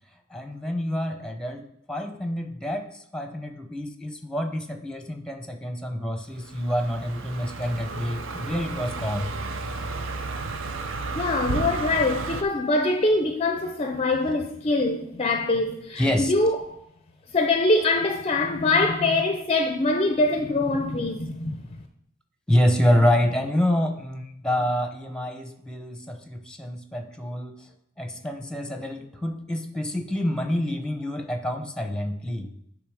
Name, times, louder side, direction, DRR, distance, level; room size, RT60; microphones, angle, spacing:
voice 1, 0.3-2.9 3.1-9.3 16.0-16.3 22.5-27.6 28.0-32.5, left 1 dB, 5° left, 0.8 m, -27 dB
Car passing by, 6.4-12.4, right 3 dB, 75° right, 0.6 m, -32 dB
voice 2, 11.1-16.6 17.3-21.6, left 2 dB, 30° left, 0.5 m, -23 dB
9.9 x 3.7 x 4.9 m
head